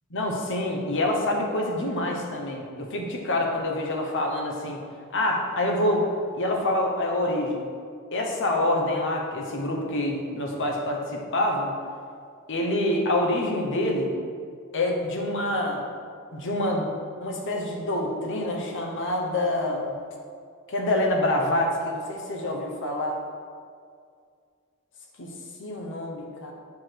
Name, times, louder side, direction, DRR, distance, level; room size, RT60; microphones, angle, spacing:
voice 1, 0.1-4.8 5.1-6.0 6.3-7.6 8.1-11.7 12.5-14.1 14.7-15.8 16.3-16.9 17.2-19.9 20.7-23.2 25.2-25.3 25.6-26.5, left 1 dB, 60° left, 1 dB, 1.0 m, -26 dB
7.1 x 4.7 x 4.6 m, 2.2 s
head